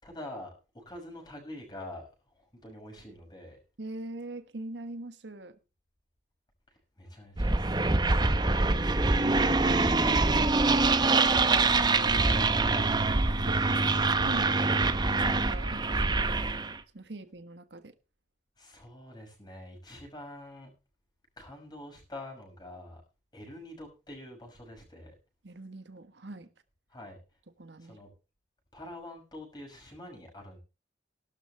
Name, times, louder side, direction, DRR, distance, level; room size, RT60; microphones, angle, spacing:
voice 1, 0.0-3.6 6.7-8.3 12.6-12.9 18.6-20.7 21.4-23.0 23.3-25.1 26.9-27.2 27.8-28.1 28.7-30.6, left 1 dB, 25° left, 6.1 m, -46 dB
voice 2, 3.8-5.6 8.5-8.9 9.2-12.2 13.2-13.8 14.2-16.3 16.9-17.9 25.4-26.5 27.6-28.0, right 2 dB, 80° right, 1.4 m, -42 dB
sound 1, 7.4-16.8, right 3 dB, 25° right, 0.7 m, -25 dB
16.0 x 12.0 x 3.4 m
head